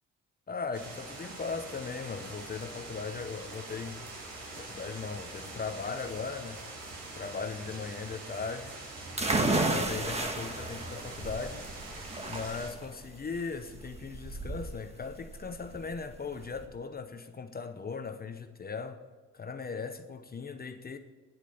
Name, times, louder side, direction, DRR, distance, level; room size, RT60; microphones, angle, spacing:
voice 1, 0.5-4.0 4.6-6.6 7.2-8.7 9.6-11.7 12.3-19.0 19.3-21.0, left 5 dB, 30° left, 0.8 m, -38 dB
sound 1, 0.7-12.7, right 2 dB, 85° right, 3.7 m, -44 dB
sound 2, 9.2-16.6, right 2 dB, 20° right, 1.6 m, -33 dB
9.8 x 8.2 x 7.0 m
cardioid pair, 90°, 30 cm